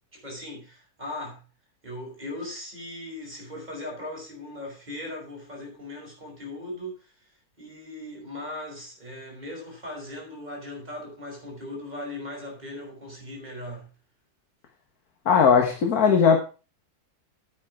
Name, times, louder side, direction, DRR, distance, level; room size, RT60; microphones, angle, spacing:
voice 1, 0.1-1.4 1.8-7.1 7.6-13.9, left 1 dB, 25° right, 5.6 m, -38 dB
voice 2, 15.3-16.4, left 6 dB, 70° left, 1.9 m, -18 dB
9.6 x 8.7 x 4.8 m
omnidirectional pair, 1.7 m